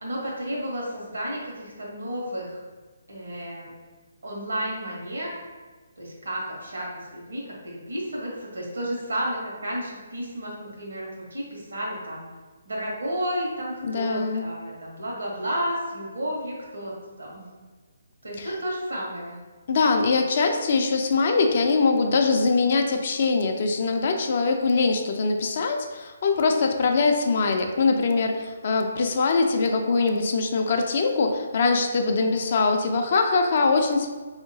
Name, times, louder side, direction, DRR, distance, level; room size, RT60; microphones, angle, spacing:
voice 1, 0.0-2.6 3.1-3.7 4.2-5.4 6.0-12.2 12.6-17.4 18.2-19.4, equal, 80° right, -3 dB, 1.2 m, -32 dB
voice 2, 13.8-14.5 18.4-18.5 19.7-34.1, left 4 dB, 50° left, 4 dB, 0.4 m, -22 dB
3.7 x 2.8 x 2.7 m, 1.3 s
figure-of-eight pair, 145°, 0 cm